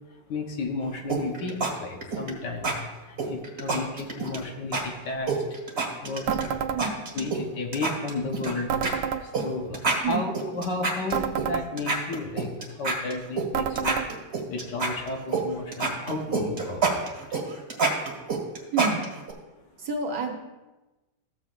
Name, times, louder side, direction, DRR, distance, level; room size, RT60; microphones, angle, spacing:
voice 1, 0.3-2.8 3.1-5.4 6.0-6.7 7.1-8.7 9.2-14.0 14.5-17.2, left 3 dB, 70° left, 3 dB, 1.5 m, -33 dB
sound 1, 1.1-1.7 2.0-2.3 2.6-2.7 3.2-4.4 4.7-4.8 5.3-6.5 6.8-7.4 7.7-8.5 8.8-8.9 9.3-9.4 9.7-11.5 11.8-13.5 13.8-15.4 15.7-19.3, right 4 dB, 35° right, 1.5 m, -27 dB
sound 2, 6.3-6.8 8.7-9.2 11.1-11.7 13.5-14.1, right 8 dB, 80° right, 1.3 m, -28 dB
voice 2, 18.7-19.1 19.8-20.4, right 4 dB, 55° right, 1 dB, 1.4 m, -28 dB
14.5 x 7.3 x 2.4 m, 1.1 s
omnidirectional pair, 2.1 m